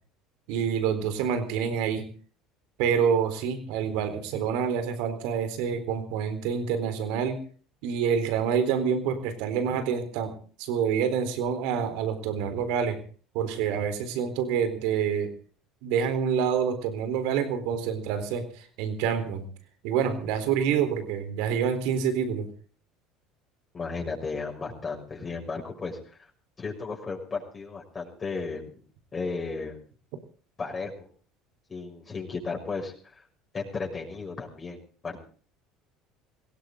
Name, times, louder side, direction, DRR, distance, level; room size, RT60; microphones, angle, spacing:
voice 1, 0.5-2.0 2.8-7.4 7.8-10.3 10.6-13.0 13.3-15.3 15.8-19.5 19.8-22.5, right 7 dB, 75° right, 10 dB, 3.9 m, -27 dB
voice 2, 23.7-26.0 26.6-28.8 29.1-29.8 30.6-31.1 31.7-33.2 33.5-35.2, left 4 dB, 30° left, -1 dB, 6.3 m, -34 dB
21.0 x 17.0 x 3.9 m, 0.42 s
hypercardioid pair, 80°, 0 cm